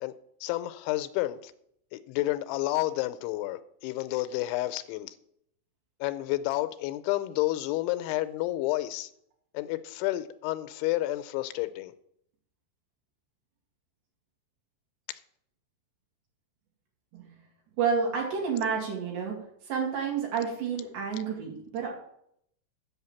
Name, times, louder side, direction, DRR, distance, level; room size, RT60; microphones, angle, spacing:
voice 1, 0.4-1.5 1.9-5.1 6.0-9.1 9.5-11.9, left 16 dB, 85° left, 2.9 m, -30 dB
voice 2, 17.8-19.3 19.6-21.9, right 6 dB, 65° right, 4.2 m, -30 dB
8.0 x 7.1 x 7.1 m
omnidirectional pair, 5.4 m